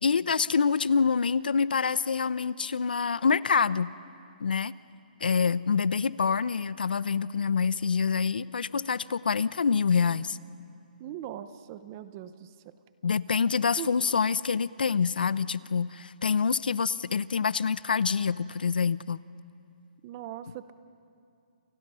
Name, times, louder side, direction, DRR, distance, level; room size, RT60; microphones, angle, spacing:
voice 1, 0.0-3.9 4.4-4.7 5.2-10.4 13.0-19.2, left 5 dB, 80° left, 18 dB, 0.7 m, -26 dB
voice 2, 11.0-12.7 13.8-13.9 20.0-20.7, right 12 dB, 20° right, 13 dB, 0.6 m, -40 dB
29.5 x 28.5 x 5.7 m, 2.5 s
hypercardioid pair, 175°, 5 cm